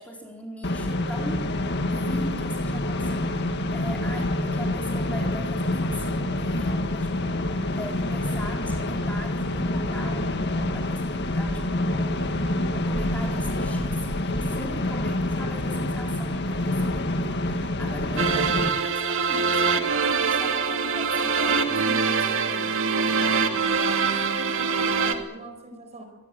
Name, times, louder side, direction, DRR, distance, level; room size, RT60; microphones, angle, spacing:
voice 1, 0.0-1.5 1.9-22.8, equal, 5° left, 0 dB, 4.1 m, -40 dB
sound 1, 0.6-18.7, left 1 dB, 50° left, 1.8 m, -27 dB
sound 2, 18.2-25.2, right 5 dB, 60° right, 2.5 m, -24 dB
voice 2, 23.7-26.0, right 1 dB, 30° right, 6 dB, 4.9 m, -42 dB
25.5 x 20.5 x 7.8 m, 1.1 s
head